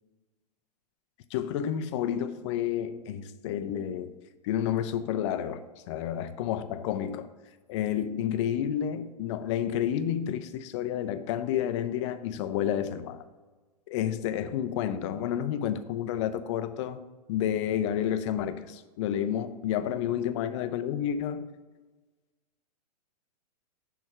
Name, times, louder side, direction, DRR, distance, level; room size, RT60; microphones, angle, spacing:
voice 1, 1.3-4.1 4.4-7.3 7.7-13.2 13.9-17.0 17.3-21.5, left 10 dB, 45° left, 11 dB, 0.5 m, -30 dB
6.3 x 3.4 x 5.8 m, 1.3 s
hypercardioid pair, 130°, 21 cm